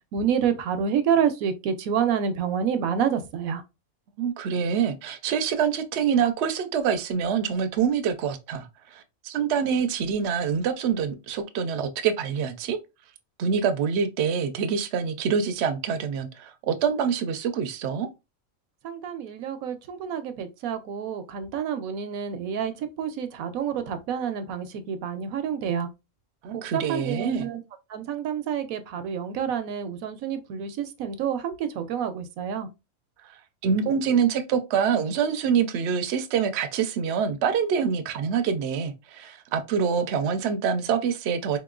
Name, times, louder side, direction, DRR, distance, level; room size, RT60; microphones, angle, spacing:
voice 1, 0.1-3.6 18.8-25.9 26.5-27.6 27.9-32.7, right 8 dB, 80° right, 1.0 m, -28 dB
voice 2, 4.2-12.8 13.4-18.1 26.4-27.5 33.2-33.3 33.6-41.6, right 7 dB, 65° right, 0.7 m, -25 dB
4.2 x 2.9 x 2.3 m
omnidirectional pair, 1.5 m